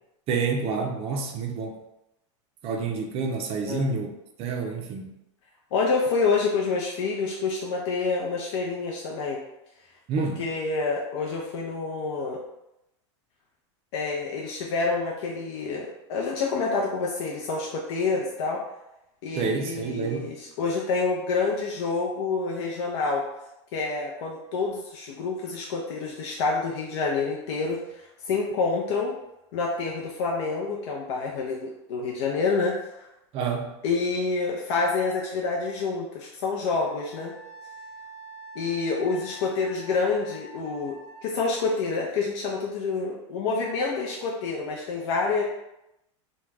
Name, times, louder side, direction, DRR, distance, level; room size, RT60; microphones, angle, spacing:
voice 1, 0.3-1.8 2.6-4.1 4.4-5.1 10.1-10.4 19.4-20.3 33.3-33.7, right 4 dB, 40° right, 3 dB, 0.4 m, -28 dB
voice 2, 5.7-9.4 10.2-12.4 13.9-18.6 19.2-23.2 23.7-29.1 29.5-33.1 33.8-37.3 38.6-45.4, left 4 dB, 65° left, -2 dB, 0.5 m, -28 dB
Wind instrument woodwind instrument, 36.9-41.7, equal, 30° left, 0.9 m, -45 dB
2.3 x 2.2 x 3.2 m, 0.88 s
hypercardioid pair, 110°, 16 cm